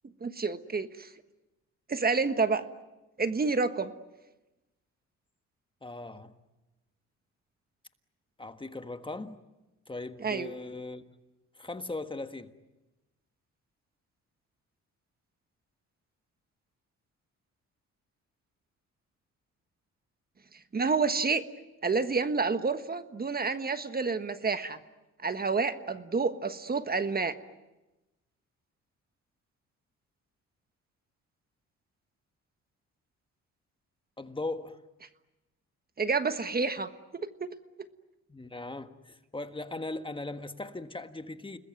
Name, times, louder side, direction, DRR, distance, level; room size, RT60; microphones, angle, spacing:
voice 1, 0.2-1.1 1.9-2.6 3.2-3.9 10.2-10.5 20.7-21.4 21.8-24.8 25.2-27.3 36.0-36.9 37.2-37.5, right 4 dB, 30° right, 1.4 m, -29 dB
voice 2, 5.8-6.3 8.4-9.4 9.9-11.2 11.6-12.5 34.2-34.8 38.3-41.6, left 2 dB, 15° left, 1.5 m, -39 dB
30.0 x 20.5 x 9.3 m
cardioid pair, 90°, 30 cm